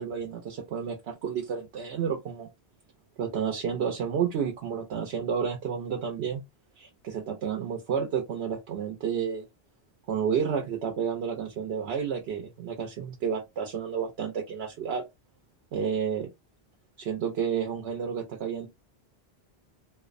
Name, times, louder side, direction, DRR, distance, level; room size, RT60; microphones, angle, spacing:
voice 1, 0.0-2.5 3.2-6.4 6.8-9.5 10.1-15.0 15.7-16.3 17.0-18.7, right 7 dB, 80° right, 0.9 m, -31 dB
2.5 x 2.0 x 2.4 m
omnidirectional pair, 1.1 m